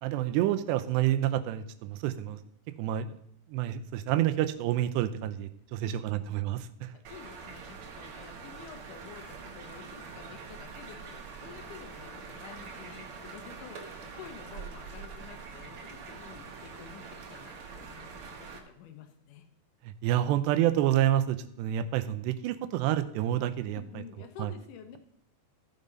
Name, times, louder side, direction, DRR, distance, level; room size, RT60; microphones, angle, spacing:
voice 1, 0.0-2.4 2.8-3.1 3.5-6.9 19.9-23.8 24.4-24.5, right 12 dB, 85° right, 11 dB, 2.8 m, -28 dB
voice 2, 5.8-6.3 6.9-19.5 23.7-25.0, left 9 dB, 70° left, 7 dB, 2.1 m, -50 dB
sound 1, 7.0-18.6, right 5 dB, 55° right, 2.1 m, -44 dB
15.0 x 5.3 x 5.3 m, 0.71 s
omnidirectional pair, 4.9 m